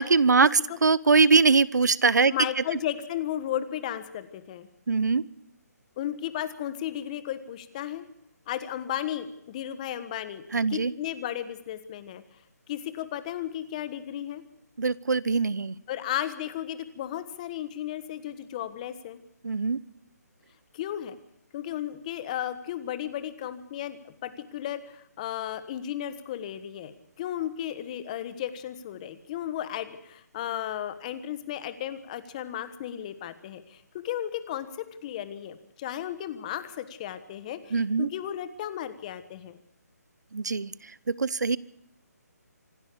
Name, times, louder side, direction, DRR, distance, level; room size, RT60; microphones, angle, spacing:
voice 1, 0.0-2.3 4.9-5.2 10.5-10.9 14.8-15.7 19.4-19.8 37.7-38.1 40.3-40.7 41.1-41.6, right 4 dB, 85° right, 21 dB, 0.9 m, -22 dB
voice 2, 2.3-4.7 6.0-8.1 8.5-10.4 10.7-12.2 12.7-14.4 15.9-19.2 20.7-21.2 21.5-39.6, left 11 dB, 25° left, 13 dB, 1.4 m, -34 dB
25.5 x 12.0 x 8.5 m, 0.76 s
hypercardioid pair, 165°, 9 cm